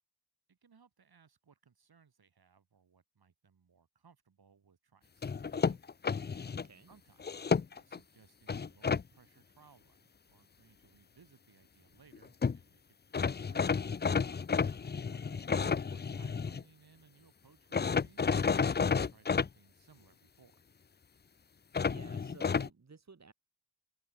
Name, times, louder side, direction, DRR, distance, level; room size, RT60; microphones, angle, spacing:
voice 1, 0.5-5.8 6.9-12.8 13.1-13.8 15.0-20.6, right 6 dB, 50° right, 7.0 m, -64 dB
sound 1, 5.2-6.7 7.2-8.0 8.5-9.0 12.1-12.2 12.4-12.6 13.1-16.6 17.7-19.5 21.7-22.7, left 5 dB, 20° left, 0.5 m, -31 dB
voice 2, 6.5-6.9 14.5-14.9 21.8-23.3, right 4 dB, 35° right, 4.4 m, -55 dB
open air
cardioid pair, 80°, 46 cm